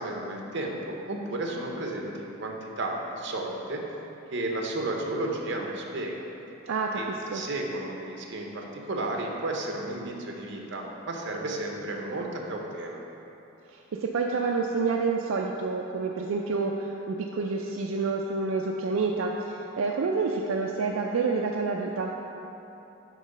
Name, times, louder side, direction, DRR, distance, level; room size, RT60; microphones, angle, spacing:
voice 1, 0.0-3.8 4.3-6.2 6.9-13.0, right 2 dB, 60° right, 0 dB, 0.7 m, -33 dB
voice 2, 6.6-7.4 13.7-22.1, right 4 dB, 80° right, 0 dB, 0.4 m, -28 dB
7.6 x 3.0 x 5.3 m, 2.9 s
head